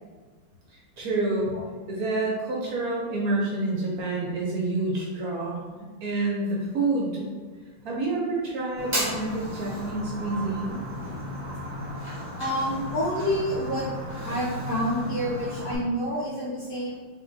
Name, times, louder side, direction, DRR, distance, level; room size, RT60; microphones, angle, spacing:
voice 1, 1.0-1.5 1.9-7.3 7.8-10.8 11.0-11.1, right 2 dB, 65° right, -3 dB, 1.0 m, -28 dB
Fire, 8.8-15.8, equal, 10° right, 0.7 m, -34 dB
voice 2, 12.4-13.9 14.2-17.0, equal, 70° left, -9 dB, 1.4 m, -28 dB
3.6 x 3.6 x 2.6 m, 1.4 s
omnidirectional pair, 2.1 m